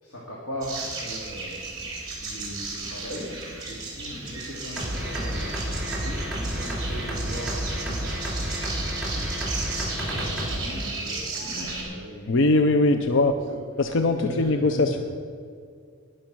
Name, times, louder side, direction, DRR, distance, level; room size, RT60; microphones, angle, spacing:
voice 1, 0.0-1.7 2.2-3.2 3.7-6.2 6.5-8.2 9.0-13.2 13.5-13.6 14.0-15.0, equal, 80° left, -3 dB, 2.3 m, -39 dB
sound 1, 0.6-11.8, right 3 dB, 20° right, 3.6 m, -35 dB
sound 2, 4.8-10.6, equal, ahead, 2.6 m, -30 dB
voice 2, 12.3-13.3 13.8-15.0, left 2 dB, 55° left, 8 dB, 0.5 m, -21 dB
11.5 x 11.0 x 6.0 m, 2.3 s
head